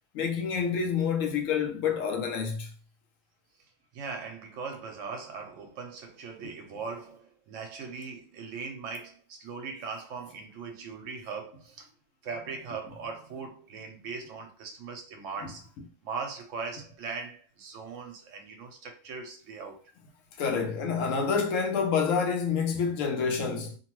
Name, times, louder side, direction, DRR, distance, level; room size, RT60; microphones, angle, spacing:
voice 1, 0.1-2.7 20.4-23.8, left 6 dB, 75° left, 1.0 m, -28 dB
voice 2, 3.9-11.9 12.2-15.7 16.0-19.9, right 5 dB, 70° right, 0.9 m, -39 dB
2.8 x 2.1 x 2.9 m
omnidirectional pair, 1.4 m